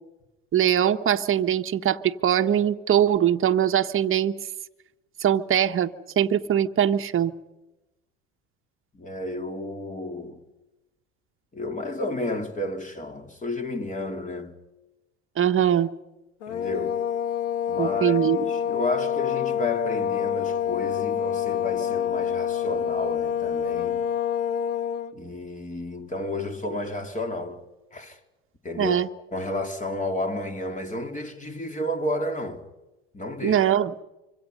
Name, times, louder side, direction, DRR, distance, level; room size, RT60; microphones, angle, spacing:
voice 1, 0.5-4.3 5.2-7.3 15.4-15.9 17.8-18.4 28.8-29.1 33.4-33.9, right 10 dB, 35° right, 1.4 m, -22 dB
voice 2, 8.9-10.4 11.5-14.6 16.5-17.0 17.7-24.0 25.1-27.6 27.9-28.2 28.6-29.0 29.3-32.7 33.1-33.7, left 1 dB, 20° left, 3.8 m, -31 dB
sound 1, 16.4-25.1, left 9 dB, 70° left, 1.8 m, -27 dB
26.0 x 25.5 x 5.5 m
hypercardioid pair, 75°, 36 cm